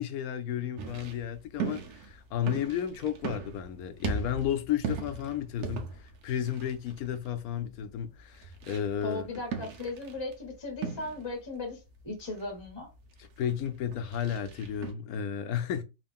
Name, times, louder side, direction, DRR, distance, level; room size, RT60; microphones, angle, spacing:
voice 1, 0.0-9.2 13.4-15.8, left 9 dB, 75° left, 1.0 m, -33 dB
sound 1, 0.8-14.9, right 5 dB, 90° right, 1.3 m, -40 dB
voice 2, 9.0-12.9, left 2 dB, 25° left, 0.7 m, -37 dB
3.8 x 2.5 x 3.5 m
omnidirectional pair, 1.6 m